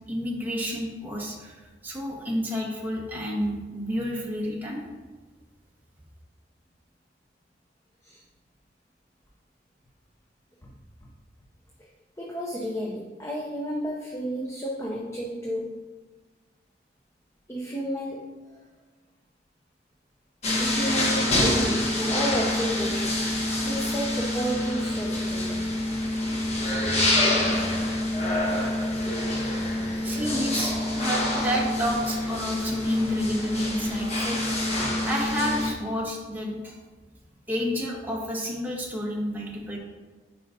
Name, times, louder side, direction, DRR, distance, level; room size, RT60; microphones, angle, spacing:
voice 1, 0.1-4.8 30.0-34.4 35.0-36.8 37.5-39.8, equal, 10° right, -4 dB, 1.2 m, -30 dB
voice 2, 12.2-15.7 17.5-18.4 20.6-25.7, right 1 dB, 15° left, -2 dB, 0.6 m, -32 dB
sound 1, 20.4-35.7, left 1 dB, 35° left, 1.0 m, -26 dB
9.2 x 4.7 x 2.7 m, 1.3 s
head